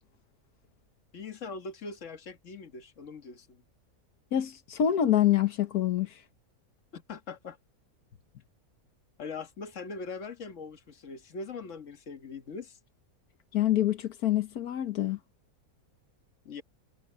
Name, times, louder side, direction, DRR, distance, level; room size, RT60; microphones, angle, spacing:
voice 1, 1.1-3.6 6.9-7.6 9.2-12.8 16.5-16.6, left 4 dB, 55° left, 1.8 m, -41 dB
voice 2, 4.3-6.2 13.5-15.2, left 11 dB, 90° left, 1.6 m, -26 dB
omnidirectional pair, 1.6 m